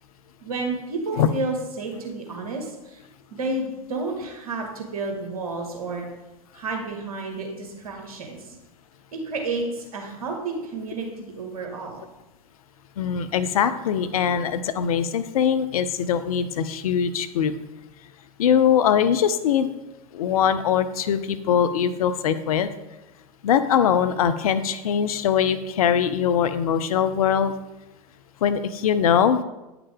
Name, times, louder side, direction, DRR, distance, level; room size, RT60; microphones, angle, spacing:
voice 1, 0.4-3.0 3.3-6.1 6.5-8.6 9.1-12.0, right 3 dB, 65° right, 2 dB, 1.9 m, -31 dB
voice 2, 13.0-17.5 18.4-19.7 20.1-22.7 23.4-27.5 28.4-29.4, left 8 dB, 65° left, 12 dB, 0.6 m, -22 dB
9.4 x 5.9 x 3.6 m, 1.0 s
figure-of-eight pair, 85°, 20 cm